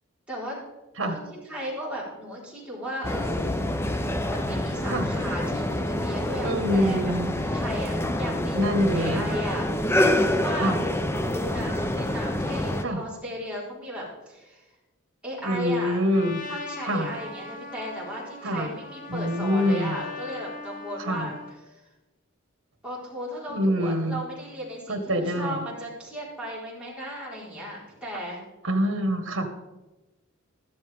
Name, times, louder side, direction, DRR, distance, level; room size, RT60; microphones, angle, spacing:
voice 1, 0.3-0.6 1.0-1.2 1.4-3.8 4.3-7.1 7.5-14.7 15.2-16.0 16.5-21.3 21.6-21.8 22.8-28.4, equal, 5° right, -7 dB, 4.2 m, -36 dB
sound 1, 3.0-12.8, left 1 dB, 10° left, 0.6 m, -26 dB
voice 2, 6.4-7.3 8.5-9.3 10.6-10.8 12.8-13.0 15.4-16.4 16.8-17.1 18.4-18.7 19.1-20.0 21.0-21.3 23.5-24.2 24.9-25.6 28.6-29.5, equal, 65° right, 6 dB, 1.6 m, -25 dB
Trumpet, 16.1-21.6, left 3 dB, 40° left, 1.1 m, -40 dB
14.0 x 12.0 x 3.6 m, 1.1 s
head